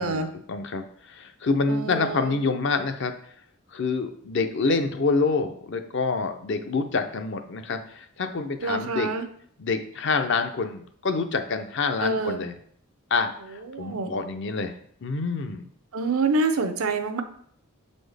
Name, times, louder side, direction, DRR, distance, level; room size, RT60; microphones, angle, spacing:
voice 1, 0.0-3.1 3.7-9.1 9.6-12.6 13.1-15.7, left 4 dB, 55° left, 8 dB, 0.5 m, -27 dB
voice 2, 1.7-2.3 8.6-9.3 12.0-12.4 13.7-14.1 15.9-17.2, right 3 dB, 85° right, 7 dB, 0.7 m, -26 dB
7.1 x 4.2 x 3.3 m, 0.63 s
head